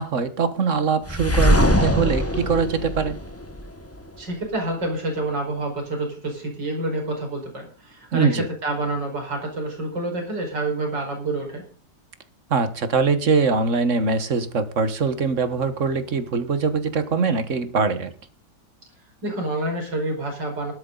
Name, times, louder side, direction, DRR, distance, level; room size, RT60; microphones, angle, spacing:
voice 1, 0.0-3.2 8.1-8.5 12.5-18.1, right 5 dB, 45° right, 11 dB, 1.6 m, -22 dB
sound 1, 1.1-4.0, equal, 10° left, 1.0 m, -21 dB
voice 2, 4.2-11.7 19.2-20.7, right 2 dB, 90° right, 2 dB, 5.6 m, -28 dB
17.0 x 12.5 x 3.9 m, 0.38 s
omnidirectional pair, 1.9 m